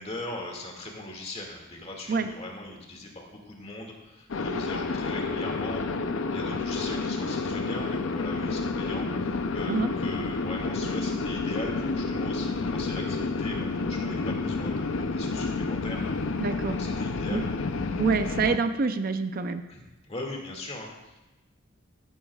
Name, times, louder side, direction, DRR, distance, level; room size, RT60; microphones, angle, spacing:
voice 1, 0.0-16.0 16.8-17.4 19.7-21.2, left 2 dB, 30° left, 0 dB, 2.1 m, -40 dB
sound 1, 4.3-18.6, left 3 dB, 75° left, 0.6 m, -30 dB
voice 2, 16.4-16.8 17.3-17.4 18.0-19.6, right 4 dB, 45° right, 9 dB, 0.5 m, -26 dB
16.0 x 12.0 x 2.4 m, 1.1 s
head